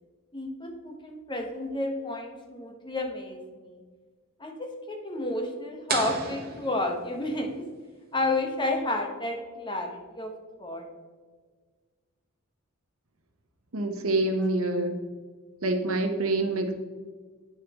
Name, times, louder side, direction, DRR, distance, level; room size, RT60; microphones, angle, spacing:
voice 1, 0.3-3.8 4.4-7.6 8.1-10.3 10.6-10.9, left 2 dB, 20° left, 2 dB, 1.1 m, -31 dB
sound 1, 5.9-7.6, right 4 dB, 45° right, 1.1 m, -34 dB
voice 2, 13.7-14.9 15.6-16.7, right 2 dB, 75° right, 5 dB, 1.0 m, -26 dB
9.3 x 7.0 x 3.0 m, 1.5 s
head